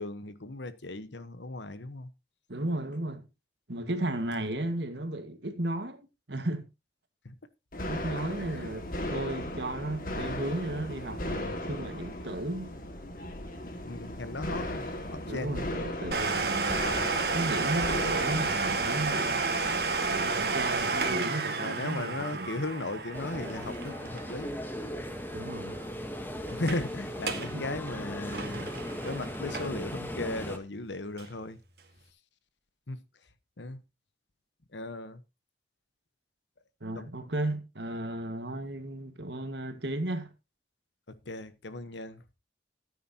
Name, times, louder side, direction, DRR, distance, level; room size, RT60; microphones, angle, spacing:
voice 1, 0.0-2.1 7.2-7.3 8.4-8.7 13.9-15.6 20.4-20.6 21.6-24.6 26.5-28.7 29.0-31.6 32.9-33.0 33.6-33.8 34.7-35.2 36.9-37.1 41.1-42.2, left 2 dB, 90° left, 1.2 m, -37 dB
voice 2, 2.5-3.3 3.7-6.7 7.9-12.7 15.3-19.5 20.0-22.5 25.3-25.8 27.4-27.7 36.8-40.3, right 1 dB, 75° right, 1.8 m, -35 dB
sound 1, 7.7-21.2, left 1 dB, 50° left, 2.0 m, -37 dB
Domestic sounds home sounds, 16.1-25.5 25.8-25.9 26.5-26.8 27.1-27.5 27.9-29.9 30.4-30.5 31.2-31.3, right 4 dB, 60° right, 1.8 m, -31 dB
sound 2, 23.1-30.6, equal, 10° left, 1.2 m, -38 dB
14.5 x 9.3 x 2.9 m
head